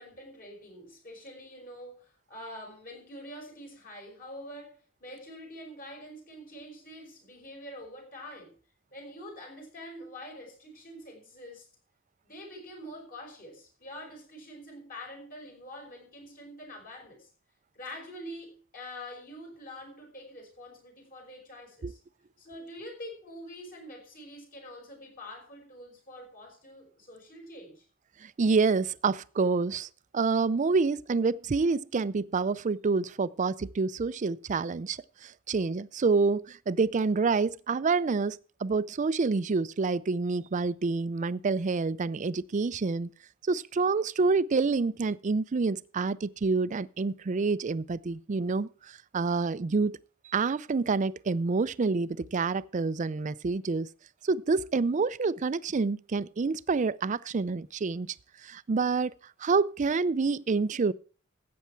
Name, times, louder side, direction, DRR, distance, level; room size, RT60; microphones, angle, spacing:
voice 1, 0.0-8.5 8.9-11.7 12.2-17.3 17.7-22.0 22.4-27.8, equal, 45° left, 5.5 m, -45 dB
voice 2, 28.2-43.1 43.5-50.0 50.2-53.9 54.2-58.1 58.4-59.1 59.4-60.9, right 4 dB, 40° right, 0.4 m, -28 dB
14.0 x 8.6 x 4.5 m
head